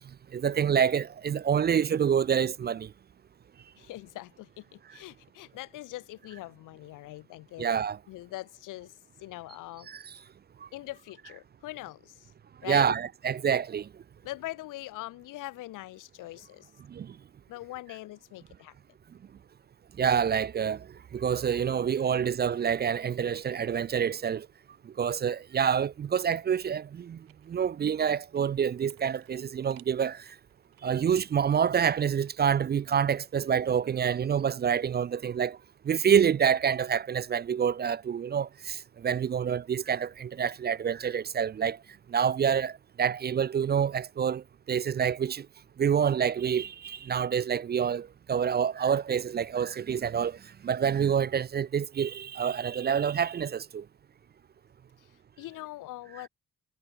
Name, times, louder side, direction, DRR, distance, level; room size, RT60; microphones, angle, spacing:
voice 1, 0.3-2.9 7.6-8.0 9.9-10.1 12.6-13.9 16.9-17.1 20.0-20.9 21.1-24.5 24.9-27.2 27.5-30.2 30.8-35.6 35.8-41.8 42.1-45.5 45.8-50.4 50.6-53.8, right 8 dB, 30° right, 0.4 m, -27 dB
voice 2, 3.8-7.7 8.1-9.9 10.1-10.2 10.7-12.3 12.6-12.9 14.2-16.7 17.5-18.7 22.1-22.2 55.0-56.3, left 17 dB, 70° left, 0.5 m, -42 dB
sound 1, 27.3-27.7 28.0-30.8 31.3-33.1 33.4-35.0 35.3-35.4, right 19 dB, 85° right, 5.6 m, -63 dB
supercardioid pair, 50°, 33 cm